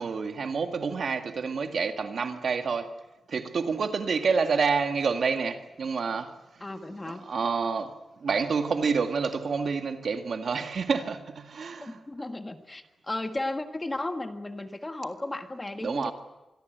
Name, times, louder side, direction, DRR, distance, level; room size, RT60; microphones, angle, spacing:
voice 1, 0.0-2.9 3.3-6.3 7.1-7.9 8.2-12.0 15.8-16.1, right 5 dB, 60° right, 1.9 m, -28 dB
voice 2, 6.6-7.3 11.8-16.1, left 2 dB, 20° left, 1.7 m, -35 dB
26.0 x 22.5 x 8.1 m
wide cardioid pair, 155°, 0 cm